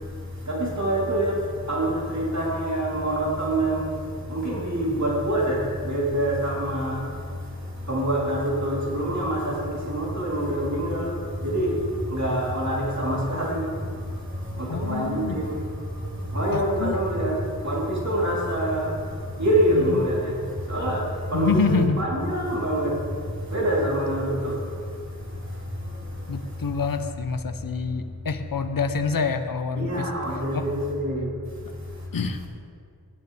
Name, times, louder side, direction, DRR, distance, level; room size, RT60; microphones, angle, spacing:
voice 1, 0.4-3.9 4.3-7.1 7.9-24.6 25.8-26.1 26.7-26.8 29.7-31.3, right 1 dB, 50° right, -5 dB, 3.3 m, -26 dB
voice 2, 14.7-15.4 16.5-17.0 19.8-20.0 21.3-22.0 26.3-30.1 30.5-30.6 32.1-32.5, left 5 dB, 65° left, 8 dB, 0.8 m, -26 dB
18.5 x 9.2 x 3.4 m, 2.2 s
wide cardioid pair, 85°, 36 cm